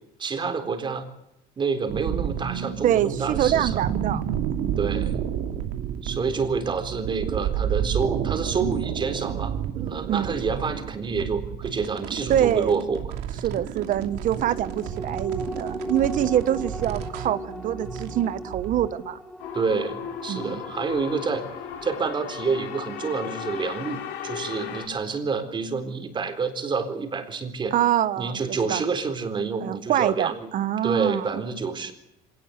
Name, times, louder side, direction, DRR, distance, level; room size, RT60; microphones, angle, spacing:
voice 1, 0.2-1.1 1.6-3.8 4.8-5.2 6.0-13.1 19.5-21.5 21.8-27.7 28.2-30.4 30.8-31.9, right 5 dB, 25° right, 7 dB, 4.0 m, -28 dB
sound 1, 1.9-18.9, right 9 dB, 75° right, 2.8 m, -31 dB
voice 2, 2.8-4.2 4.6-4.8 10.1-10.3 12.3-12.8 13.4-19.2 20.3-20.6 27.7-28.8 29.6-31.3, right 11 dB, 50° right, 14 dB, 1.3 m, -25 dB
sound 2, 14.0-24.8 25.2-25.3, left 1 dB, ahead, 2.0 m, -40 dB
sound 3, 19.4-24.9, left 9 dB, 75° left, 5.7 m, -36 dB
25.5 x 18.5 x 8.2 m, 0.84 s
cardioid pair, 140°, 17 cm